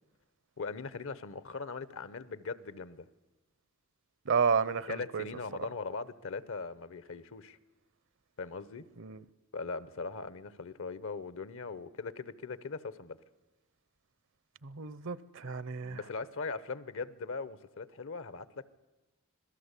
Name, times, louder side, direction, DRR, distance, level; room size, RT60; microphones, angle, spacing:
voice 1, 0.6-3.1 4.9-7.6 8.4-8.9 9.5-13.2 15.8-18.7, left 4 dB, 65° left, 16 dB, 0.9 m, -40 dB
voice 2, 4.3-5.2 9.0-9.2 14.6-16.0, right 5 dB, 60° right, 18 dB, 0.8 m, -31 dB
26.0 x 17.5 x 8.3 m, 1.1 s
head